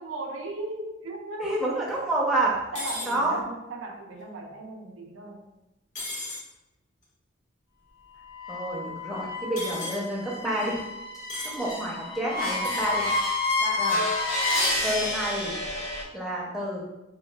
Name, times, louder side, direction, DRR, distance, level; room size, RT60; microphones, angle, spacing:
voice 1, 0.0-1.6 2.7-5.5 13.6-14.0, right 2 dB, 85° right, 2 dB, 0.5 m, -37 dB
voice 2, 1.4-2.6 3.1-3.3 8.5-10.8 11.4-13.1 13.8-14.0 14.8-15.6 16.1-16.8, right 1 dB, ahead, -5 dB, 0.5 m, -28 dB
sound 1, 2.7-3.1 5.9-6.4 9.6-10.0 11.3-11.6 12.6-12.9, left 2 dB, 40° left, 0.7 m, -35 dB
sound 2, 8.3-16.0, left 2 dB, 90° left, 0.9 m, -29 dB
3.6 x 2.3 x 2.2 m, 0.96 s
head